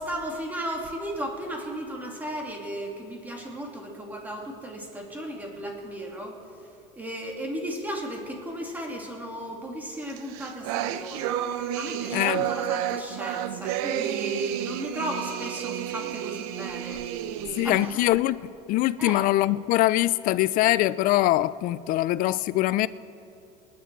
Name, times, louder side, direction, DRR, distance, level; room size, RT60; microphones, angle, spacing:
voice 1, 0.0-6.4 6.9-11.4 11.7-18.0 19.0-19.2, right 1 dB, 10° right, 0 dB, 2.4 m, -35 dB
sound 1, 10.1-18.0, right 11 dB, 75° right, 0.8 m, -31 dB
voice 2, 12.1-12.5 17.6-18.4 18.7-22.9, left 16 dB, 45° left, 17 dB, 0.5 m, -23 dB
28.0 x 10.5 x 4.6 m, 2.7 s
cardioid pair, 140°, 19 cm